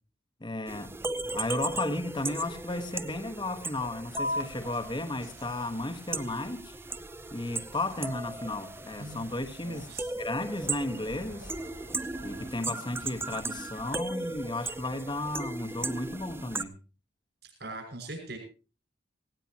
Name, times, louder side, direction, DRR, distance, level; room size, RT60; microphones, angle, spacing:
voice 1, 0.4-1.0 1.3-6.7 7.3-11.5 12.2-16.8, left 2 dB, 25° left, 1.3 m, -34 dB
sound 1, 0.7-16.6, right 3 dB, 10° right, 0.6 m, -38 dB
sound 2, 4.2-11.2, left 1 dB, 55° left, 0.7 m, -43 dB
Thunder / Rain, 4.3-12.5, right 1 dB, 75° right, 4.8 m, -54 dB
voice 2, 9.6-10.0 17.6-18.4, right 2 dB, 60° right, 6.1 m, -41 dB
18.0 x 17.5 x 2.9 m
head